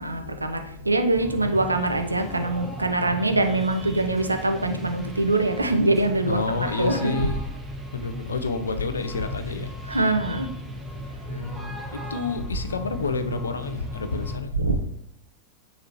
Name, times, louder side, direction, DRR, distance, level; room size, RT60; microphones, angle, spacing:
voice 1, 0.0-7.2 9.9-10.5 14.6-14.8, right 2 dB, 80° right, 0.4 m, -24 dB
sound 1, 1.1-14.4, equal, 15° right, 0.6 m, -37 dB
voice 2, 6.3-7.4 7.9-10.0 11.3-14.6, left 4 dB, 75° left, 0.3 m, -29 dB
4.2 x 2.9 x 2.8 m
figure-of-eight pair, 90°, 0 cm